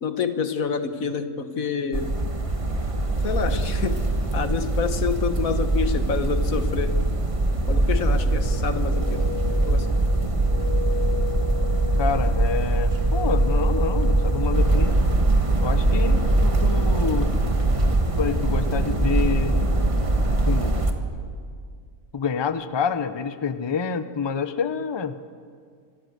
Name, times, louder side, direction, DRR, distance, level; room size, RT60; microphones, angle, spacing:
voice 1, 0.0-2.2 3.2-7.0 7.7-9.3 9.6-9.9, left 6 dB, 85° left, 9 dB, 1.6 m, -28 dB
sound 1, 1.9-20.9, right 2 dB, 25° right, 1.3 m, -22 dB
voice 2, 12.0-14.9 15.6-17.3 18.2-19.6 20.4-20.8 22.1-25.2, left 6 dB, 25° left, 11 dB, 0.6 m, -27 dB
25.0 x 14.5 x 7.9 m, 2.1 s
omnidirectional pair, 1.4 m